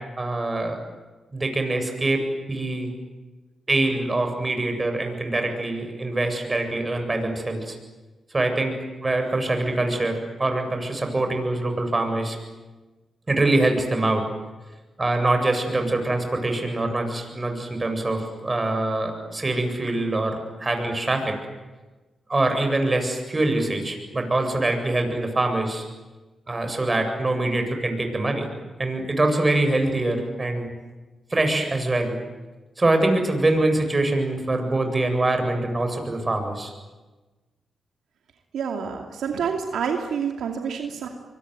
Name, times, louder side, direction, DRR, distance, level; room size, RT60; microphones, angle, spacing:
voice 1, 0.2-0.8 1.3-2.9 3.7-7.8 8.3-12.4 13.3-14.2 15.0-21.4 22.3-25.8 26.5-28.5 28.8-30.7 31.3-32.2 32.8-36.7, right 2 dB, 30° right, 5 dB, 7.7 m, -24 dB
voice 2, 38.5-41.1, right 6 dB, 85° right, 3 dB, 2.6 m, -28 dB
24.5 x 23.5 x 9.5 m, 1.2 s
cardioid pair, 55°, 0 cm